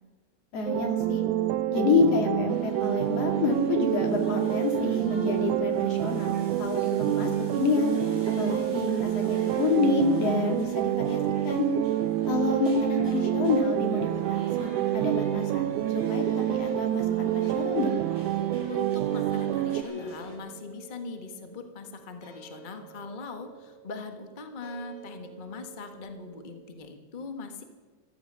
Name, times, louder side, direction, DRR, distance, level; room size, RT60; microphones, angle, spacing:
voice 1, 0.5-1.2 1.7-7.9 8.4-11.7 12.3-15.7 16.1-16.2 16.5-17.9, left 4 dB, 55° left, 3 dB, 3.3 m, -28 dB
sound 1, 0.7-19.8, right 14 dB, 80° right, 2.1 m, -27 dB
sound 2, 2.5-20.4, left 1 dB, 15° right, 5.9 m, -45 dB
sound 3, 15.0-26.8, right 6 dB, 35° left, 5.5 m, -51 dB
voice 2, 18.7-27.6, left 4 dB, 70° left, 6 dB, 0.4 m, -41 dB
14.5 x 14.5 x 6.1 m, 1.4 s
omnidirectional pair, 3.5 m